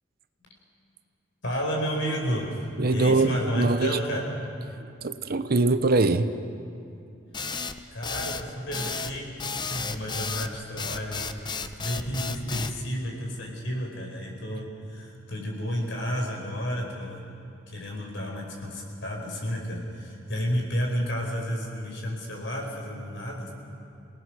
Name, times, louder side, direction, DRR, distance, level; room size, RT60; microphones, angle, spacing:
voice 1, 1.4-4.2 7.9-17.2 17.7-23.5, equal, 65° left, 0 dB, 5.0 m, -31 dB
voice 2, 2.8-4.0 4.8-6.3, right 3 dB, 50° right, 11 dB, 0.7 m, -23 dB
sound 1, 7.3-12.8, left 4 dB, 25° left, 0.7 m, -33 dB
28.5 x 18.5 x 6.3 m, 2.5 s
head